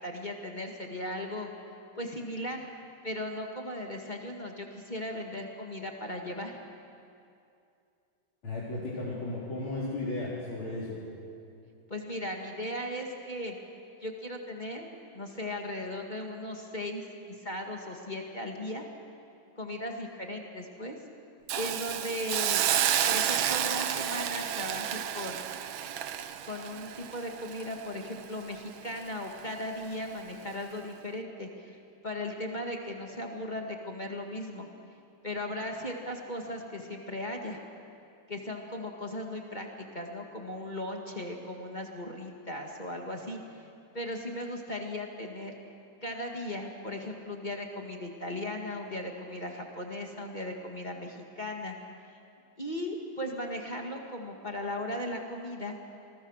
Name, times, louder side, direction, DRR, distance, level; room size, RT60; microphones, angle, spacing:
voice 1, 0.0-1.5 2.0-2.6 3.0-6.6 11.9-13.6 14.0-14.9 15.1-18.9 19.6-21.0 21.5-22.6 23.1-25.4 26.5-31.8 32.0-34.7 35.2-37.6 38.3-43.7 43.9-45.5 46.0-51.8 52.6-55.8, left 1 dB, 25° left, 1 dB, 2.0 m, -37 dB
voice 2, 8.4-10.9, left 2 dB, 85° left, -7 dB, 4.8 m, -34 dB
Hiss, 21.5-28.5 28.9-29.1, right 10 dB, 80° right, 1.7 m, -30 dB
28.0 x 22.0 x 6.6 m, 2.6 s
omnidirectional pair, 2.2 m